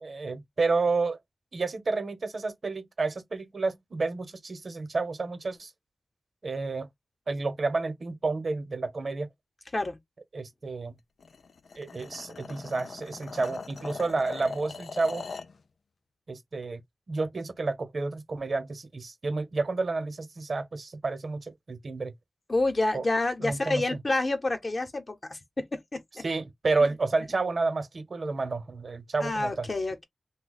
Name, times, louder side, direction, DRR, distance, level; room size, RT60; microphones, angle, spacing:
voice 1, 0.0-1.2 1.5-5.7 6.4-6.9 7.3-9.3 10.3-10.9 11.8-15.2 16.3-16.8 17.1-22.1 22.9-23.0 23.4-23.8 26.2-29.7, right 3 dB, 65° right, 0.9 m, -30 dB
sound 1, 11.2-15.6, left 4 dB, 85° left, 0.4 m, -41 dB
voice 2, 22.5-26.2 29.2-30.0, left 2 dB, 45° left, 0.9 m, -28 dB
2.8 x 2.2 x 4.0 m
wide cardioid pair, 65°, 0 cm